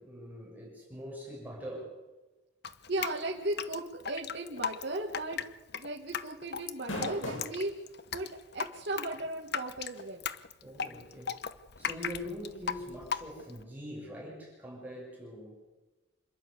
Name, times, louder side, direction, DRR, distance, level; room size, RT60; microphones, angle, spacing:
voice 1, 0.0-2.0 10.6-11.4 11.8-15.6, equal, 10° right, -3 dB, 6.5 m, -43 dB
Drip, 2.6-13.6, left 7 dB, 60° left, 1.0 m, -37 dB
voice 2, 2.9-5.4 5.8-7.7 8.1-8.3 8.5-10.2, right 2 dB, 60° right, -1 dB, 2.2 m, -36 dB
sound 1, 4.9-5.2 5.5-5.6 6.6-7.5 8.3-8.4 10.0-10.1, equal, 85° left, 7.5 m, -37 dB
27.0 x 12.0 x 8.2 m, 1.1 s
head